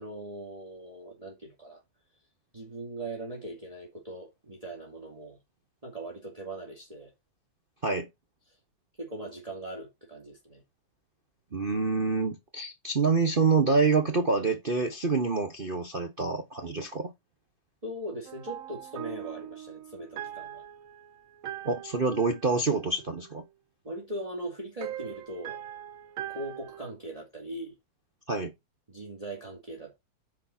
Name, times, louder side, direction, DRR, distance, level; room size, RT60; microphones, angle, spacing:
voice 1, 0.0-1.8 2.5-5.4 5.8-7.1 9.0-10.6 17.8-20.6 23.8-25.6 26.3-27.8 28.9-30.0, right 1 dB, 20° right, 2.6 m, -40 dB
voice 2, 11.5-17.1 21.6-23.4 28.3-28.5, right 4 dB, 35° right, 1.1 m, -27 dB
sound 1, 18.3-23.5 24.8-26.9, right 11 dB, 55° right, 1.0 m, -42 dB
9.9 x 5.2 x 4.4 m
omnidirectional pair, 2.1 m